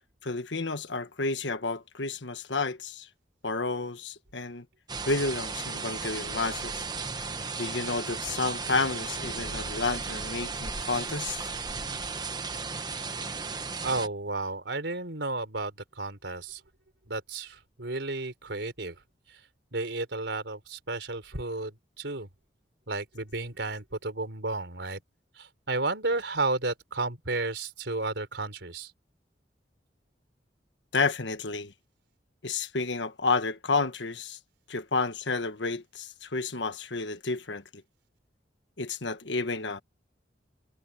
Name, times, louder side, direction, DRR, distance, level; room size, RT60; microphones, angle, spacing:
voice 1, 0.2-3.1 3.4-4.6 5.1-6.8 7.6-11.4 30.9-31.7 32.4-34.4 34.7-37.8 38.8-39.8, left 3 dB, 85° left, 1.5 m, -31 dB
sound 1, 4.9-14.1, right 4 dB, 25° right, 1.1 m, -35 dB
voice 2, 13.8-16.6 17.1-18.9 19.7-22.3 22.9-25.0 25.4-28.9, right 2 dB, 80° right, 4.0 m, -32 dB
head